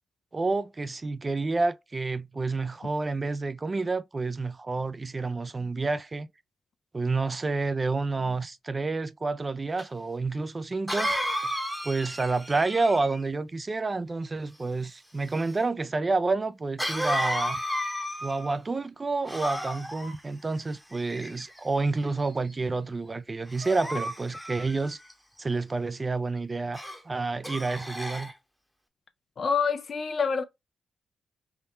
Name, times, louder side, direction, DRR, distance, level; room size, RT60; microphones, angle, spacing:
voice 1, 0.3-6.3 6.9-11.1 11.8-17.6 18.2-25.0 25.4-28.3, right 3 dB, 30° right, 0.3 m, -29 dB
Cough, 9.8-9.9 10.9-13.3 16.8-18.6 19.3-20.1 20.9-21.6 22.2-22.5 23.5-25.1 26.7-27.0 27.4-28.3, equal, ahead, 0.8 m, -32 dB
voice 2, 29.4-30.4, left 5 dB, 55° left, 0.4 m, -26 dB
3.5 x 2.2 x 4.1 m
cardioid pair, 75°, 0 cm